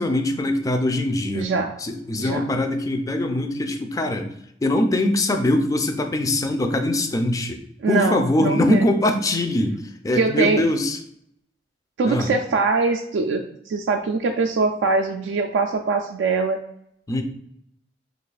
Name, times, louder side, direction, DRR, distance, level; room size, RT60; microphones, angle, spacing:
voice 1, 0.0-1.5 1.8-4.3 4.6-7.6 7.9-9.8 10.0-11.0 12.1-12.3 17.1-17.2, left 1 dB, 20° left, 6 dB, 0.3 m, -22 dB
voice 2, 1.3-1.7 2.2-2.4 7.8-8.9 10.1-10.7 12.0-16.6, right 4 dB, 75° right, 3 dB, 0.3 m, -22 dB
3.1 x 2.3 x 3.9 m, 0.72 s
head